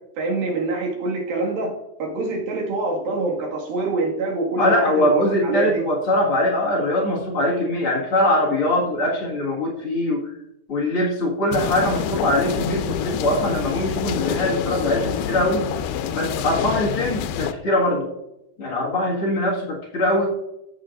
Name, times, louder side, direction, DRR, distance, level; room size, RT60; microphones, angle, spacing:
voice 1, 0.2-5.8, right 2 dB, 80° right, -1 dB, 3.8 m, -25 dB
voice 2, 4.6-10.3 10.7-15.7 16.2-18.1 18.6-20.3, left 1 dB, 45° left, -4 dB, 2.3 m, -22 dB
sound 1, 11.5-17.5, left 9 dB, 90° left, 2.4 m, -27 dB
14.0 x 8.6 x 2.6 m, 0.90 s
omnidirectional pair, 4.1 m